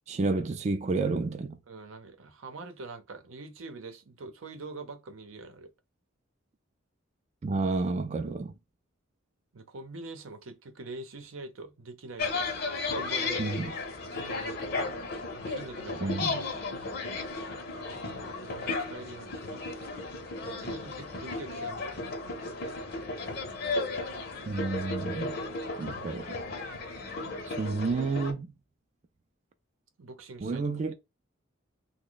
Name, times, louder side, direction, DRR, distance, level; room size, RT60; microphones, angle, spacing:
voice 1, 0.1-1.6 7.4-8.5 13.4-13.7 16.0-16.4 24.5-25.4 25.8-26.4 27.5-28.5 30.4-30.9, right 3 dB, 35° right, 0.3 m, -30 dB
voice 2, 1.7-5.7 9.5-14.9 15.3-16.7 17.9-20.0 20.4-22.6 30.0-30.7, right 3 dB, 90° right, 0.7 m, -45 dB
sound 1, 12.2-28.3, left 3 dB, 50° left, 0.7 m, -35 dB
3.0 x 2.1 x 3.9 m
head